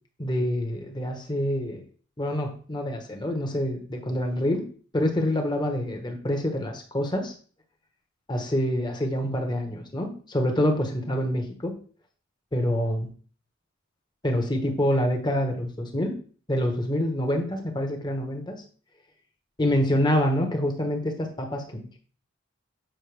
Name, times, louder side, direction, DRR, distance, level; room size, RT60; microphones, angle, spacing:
voice 1, 0.2-1.8 2.2-4.6 4.9-7.3 8.3-11.7 12.5-13.1 14.2-16.1 16.5-18.6 19.6-22.0, left 1 dB, 20° left, 3 dB, 1.3 m, -26 dB
7.6 x 5.8 x 3.4 m, 0.42 s
head